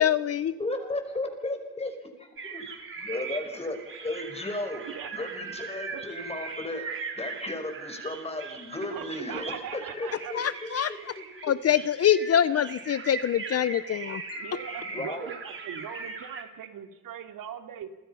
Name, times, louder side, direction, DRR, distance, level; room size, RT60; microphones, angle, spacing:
voice 1, 0.0-0.5 10.3-10.9 11.4-14.6, left 9 dB, 45° left, 14 dB, 0.7 m, -25 dB
voice 2, 0.6-1.9 2.2-2.7 3.0-4.9 5.1-6.9 7.2-10.4 10.9-11.2 14.9-15.3, left 2 dB, 20° left, 6 dB, 5.2 m, -34 dB
sound 1, 2.4-16.4, right 4 dB, 35° right, 4.2 m, -40 dB
voice 3, 8.8-10.3 14.3-17.9, right 9 dB, 70° right, 6 dB, 2.8 m, -40 dB
29.5 x 25.0 x 5.7 m, 1.1 s
cardioid pair, 125°, 34 cm